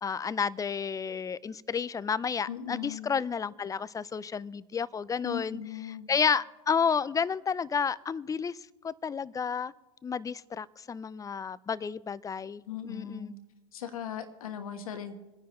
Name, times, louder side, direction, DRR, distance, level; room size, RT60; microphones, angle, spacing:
voice 1, 0.0-5.6 6.1-8.6 8.8-9.7 10.0-13.3, left 6 dB, 20° left, 19 dB, 0.4 m, -31 dB
voice 2, 2.5-3.1 5.2-6.1 12.7-13.3 13.7-15.2, left 8 dB, 85° left, 7 dB, 1.3 m, -38 dB
26.0 x 10.0 x 3.1 m, 1.2 s
hypercardioid pair, 85°, 18 cm